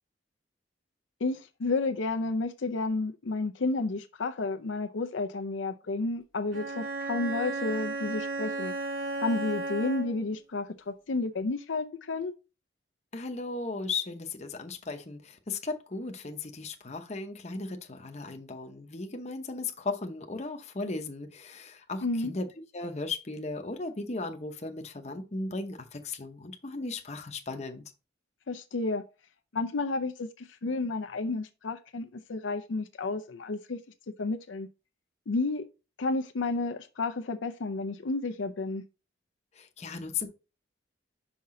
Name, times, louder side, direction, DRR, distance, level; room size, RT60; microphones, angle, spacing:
voice 1, 1.2-8.7 9.2-12.3 22.0-22.3 28.5-29.0 29.5-33.8 34.2-34.7 35.3-35.6 36.0-38.8, left 3 dB, 75° left, 0.5 m, -31 dB
Bowed string instrument, 6.5-10.3, right 2 dB, 75° right, 2.2 m, -34 dB
voice 2, 13.1-22.5 22.7-27.8 39.6-40.3, left 3 dB, 35° left, 0.8 m, -36 dB
5.7 x 5.3 x 3.8 m
head